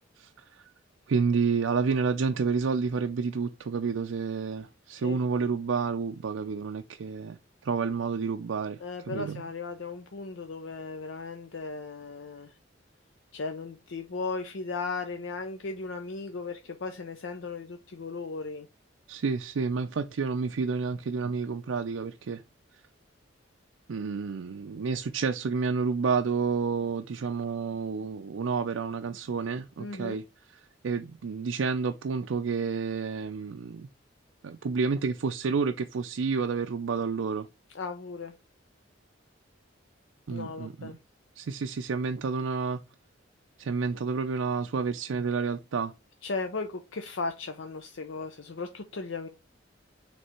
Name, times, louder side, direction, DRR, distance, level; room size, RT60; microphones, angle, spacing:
voice 1, 0.2-0.6 1.1-7.4 7.6-8.8 9.1-9.5 19.1-22.4 23.9-33.9 34.4-37.5 40.3-41.0 41.4-42.8 43.6-45.9, right 5 dB, 90° right, 0.4 m, -30 dB
voice 2, 8.8-12.5 13.3-18.7 29.8-30.2 37.7-38.3 40.3-41.0 46.2-49.3, left 4 dB, 75° left, 0.6 m, -36 dB
6.4 x 3.4 x 4.3 m
head